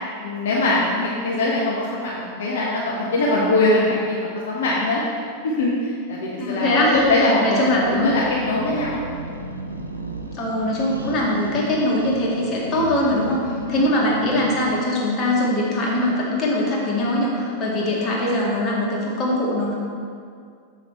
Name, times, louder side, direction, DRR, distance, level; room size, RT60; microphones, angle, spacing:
voice 1, 0.2-5.0 5.4-7.6 7.8-9.0 13.7-13.8, left 2 dB, 60° left, -5 dB, 1.2 m, -22 dB
voice 2, 6.4-8.2 10.3-19.7, left 1 dB, 30° left, -4 dB, 2.1 m, -22 dB
sound 1, 7.7-14.9, right 2 dB, 85° right, 0.6 m, -35 dB
7.4 x 6.4 x 4.5 m, 2.2 s
figure-of-eight pair, 90°, 0 cm